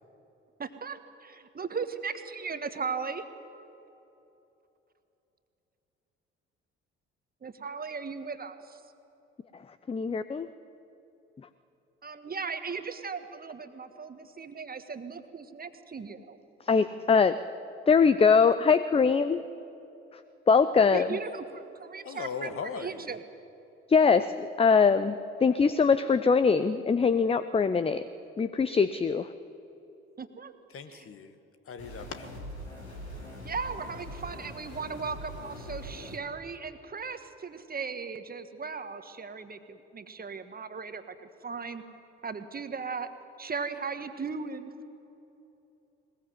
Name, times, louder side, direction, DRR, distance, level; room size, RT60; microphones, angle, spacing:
voice 1, 0.6-3.2 7.4-8.8 12.0-16.4 20.9-23.2 30.2-30.5 30.9-31.1 33.4-41.8 42.2-43.1 43.4-44.7, right 5 dB, 30° right, 9 dB, 1.5 m, -37 dB
voice 2, 9.9-10.5 16.7-17.4 17.9-19.4 20.5-21.1 23.9-28.1 28.4-29.3, left 5 dB, 20° left, 13 dB, 0.7 m, -22 dB
voice 3, 22.0-23.1 30.7-31.4 31.6-32.5, left 6 dB, 40° left, 9 dB, 1.6 m, -39 dB
sound 1, 31.8-36.2, equal, 85° left, 2.9 m, -42 dB
21.0 x 21.0 x 7.6 m, 2.9 s
figure-of-eight pair, 50°, 32 cm